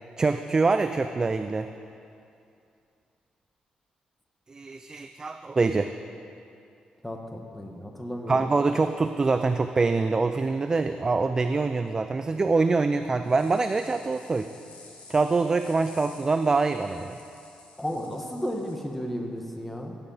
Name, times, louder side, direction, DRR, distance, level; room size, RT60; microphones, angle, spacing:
voice 1, 0.2-1.7 4.5-5.9 8.3-14.5 15.1-17.2, right 3 dB, 25° right, 9 dB, 0.4 m, -24 dB
voice 2, 7.0-8.4 17.8-20.0, equal, 5° left, 1 dB, 1.3 m, -33 dB
sound 1, 13.2-18.7, left 3 dB, 65° left, 2.7 m, -52 dB
14.0 x 10.0 x 5.6 m, 2.5 s
cardioid pair, 110°, 3 cm